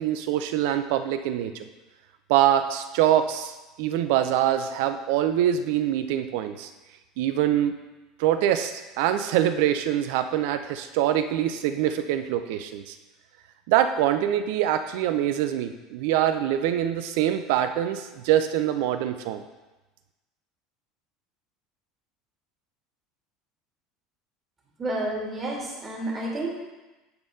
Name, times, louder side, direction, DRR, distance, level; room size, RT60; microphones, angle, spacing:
voice 1, 0.0-1.7 2.3-6.7 7.2-7.7 8.2-12.9 13.7-19.4, right 11 dB, 65° right, 9 dB, 0.5 m, -24 dB
voice 2, 24.8-26.5, right 1 dB, 30° right, -3 dB, 2.4 m, -30 dB
9.6 x 4.1 x 3.8 m, 1.1 s
hypercardioid pair, 70°, 0 cm